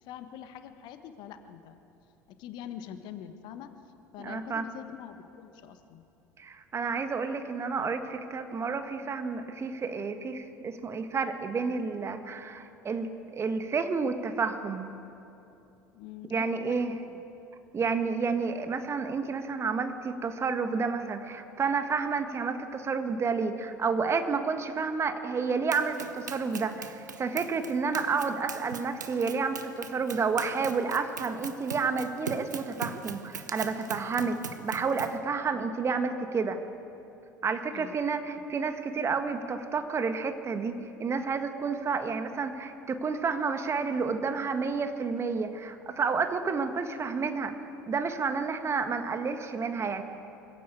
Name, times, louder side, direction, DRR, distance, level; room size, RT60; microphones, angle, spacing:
voice 1, 0.0-1.8 2.3-3.7 4.1-6.0 15.9-17.2 35.5-35.6 37.7-38.0, left 10 dB, 50° left, 9 dB, 1.4 m, -44 dB
voice 2, 4.2-4.7 6.4-14.9 16.3-16.9 17.7-36.6 37.4-47.5 47.9-50.0, right 5 dB, 30° right, 8 dB, 1.6 m, -30 dB
Run, 25.7-35.2, right 6 dB, 80° right, 1.0 m, -41 dB
23.5 x 15.5 x 8.4 m, 2.8 s
figure-of-eight pair, 65°, 10 cm